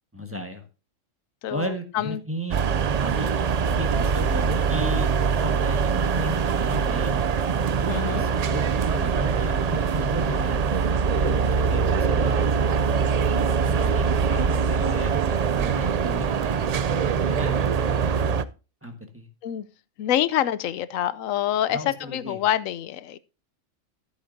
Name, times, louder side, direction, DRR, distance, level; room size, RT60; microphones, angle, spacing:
voice 1, 0.1-0.6 1.5-2.6 3.0-3.3 3.7-5.1 5.4-7.2 7.8-8.6 8.9-10.6 11.1-12.5 12.9-13.0 13.3-15.2 15.5-16.8 17.2-18.3 18.8-19.3 21.7-22.4, left 1 dB, 10° right, 4 dB, 1.5 m, -35 dB
voice 2, 1.4-2.2 7.9-8.3 19.4-19.7 20.0-23.2, left 11 dB, 90° left, 16 dB, 1.0 m, -26 dB
sound 1, 2.5-18.4, right 6 dB, 75° right, 0.3 m, -23 dB
13.5 x 8.3 x 2.7 m, 0.32 s
omnidirectional pair, 1.3 m